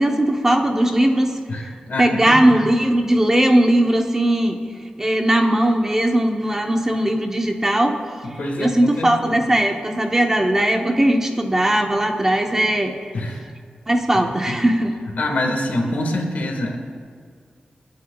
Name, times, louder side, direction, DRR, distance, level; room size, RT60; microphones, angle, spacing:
voice 1, 0.0-1.3 2.0-4.6 5.0-8.0 8.6-12.9 13.9-14.9, right 1 dB, 15° right, 3 dB, 0.9 m, -18 dB
voice 2, 1.5-2.6 8.2-9.4 13.1-13.4 14.1-14.6 15.2-16.8, left 1 dB, 70° left, 1 dB, 1.7 m, -26 dB
28.0 x 9.5 x 2.4 m, 2.1 s
wide cardioid pair, 145°, 3 cm